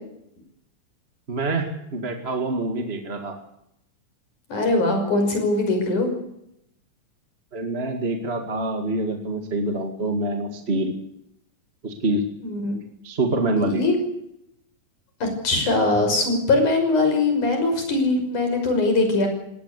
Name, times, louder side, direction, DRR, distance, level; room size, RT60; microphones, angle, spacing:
voice 1, 1.3-3.4 7.5-10.9 11.8-12.2 13.0-13.9, right 2 dB, 25° right, 5 dB, 1.9 m, -26 dB
voice 2, 4.5-6.1 12.4-12.8 13.6-14.0 15.2-19.3, left 2 dB, 75° left, 5 dB, 7.4 m, -21 dB
20.0 x 18.5 x 8.3 m, 0.78 s
omnidirectional pair, 3.6 m